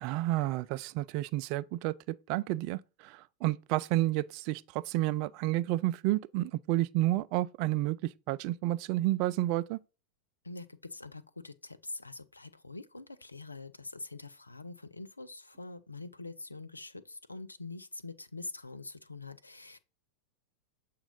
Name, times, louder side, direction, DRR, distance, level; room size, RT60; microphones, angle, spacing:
voice 1, 0.0-9.8, right 16 dB, 45° right, 0.3 m, -30 dB
voice 2, 10.4-19.8, left 3 dB, 80° left, 0.5 m, -44 dB
7.2 x 2.6 x 5.2 m
figure-of-eight pair, 90°, 0 cm